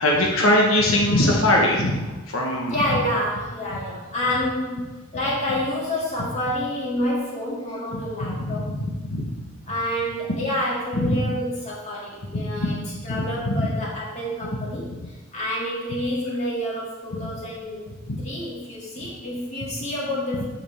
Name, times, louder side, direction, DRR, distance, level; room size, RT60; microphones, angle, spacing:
voice 1, 0.0-3.0 3.7-3.8 7.9-9.4 10.9-11.2 12.6-13.7 18.1-18.2 19.0-19.1 20.4-20.5, left 1 dB, 85° left, -2 dB, 1.2 m, -22 dB
voice 2, 2.7-8.7 9.7-12.8 13.0-17.9 18.2-20.4, left 1 dB, 35° left, -5 dB, 2.3 m, -28 dB
7.8 x 7.3 x 3.4 m, 1.2 s
head